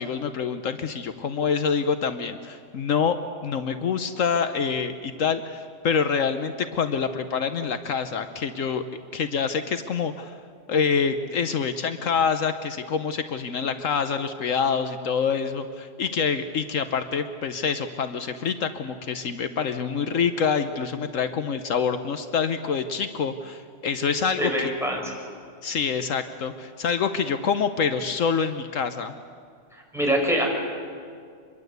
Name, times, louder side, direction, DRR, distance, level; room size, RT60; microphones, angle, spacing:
voice 1, 0.0-3.2 3.4-8.8 9.1-10.4 10.7-24.7 25.6-29.1, left 6 dB, 75° left, 9 dB, 1.3 m, -26 dB
voice 2, 24.4-25.1 29.9-30.5, equal, ahead, 0 dB, 5.3 m, -24 dB
26.0 x 22.0 x 8.1 m, 2.1 s
omnidirectional pair, 1.4 m